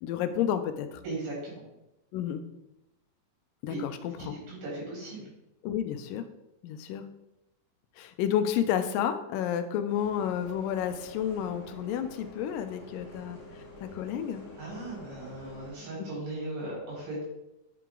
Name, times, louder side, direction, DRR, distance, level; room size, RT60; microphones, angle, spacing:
voice 1, 0.0-1.0 2.1-2.4 3.6-4.4 5.6-6.2 6.6-7.0 8.0-13.4 13.8-14.4, left 9 dB, 85° left, 9 dB, 2.2 m, -30 dB
voice 2, 1.0-1.6 3.7-3.8 4.2-5.3 13.0-13.2 14.6-17.2, right 2 dB, 80° right, -4 dB, 4.7 m, -38 dB
Bus, 9.9-15.7, left 1 dB, 35° left, 1.9 m, -48 dB
9.1 x 4.6 x 3.8 m, 0.91 s
omnidirectional pair, 3.9 m